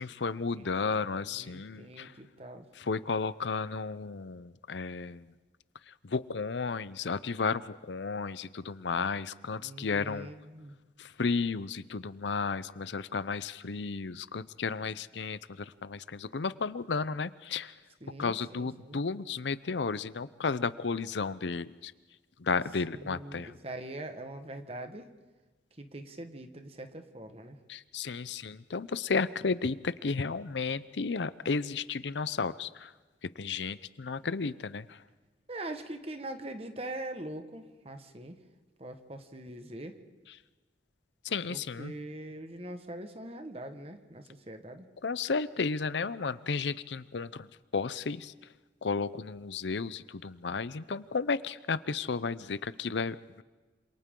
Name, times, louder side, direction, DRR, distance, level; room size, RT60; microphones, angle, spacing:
voice 1, 0.0-2.1 2.8-5.3 6.0-10.3 11.0-17.7 18.2-21.9 22.4-23.5 27.7-32.9 33.4-35.0 41.2-41.9 45.0-47.5 47.7-48.3 48.8-53.4, left 4 dB, 80° left, 16 dB, 0.6 m, -33 dB
voice 2, 1.1-2.6 9.6-10.8 18.0-19.0 22.9-25.1 25.8-27.6 35.5-38.4 38.8-40.0 41.5-44.9, right 1 dB, 35° right, 7 dB, 1.5 m, -43 dB
27.0 x 27.0 x 3.8 m, 1.3 s
head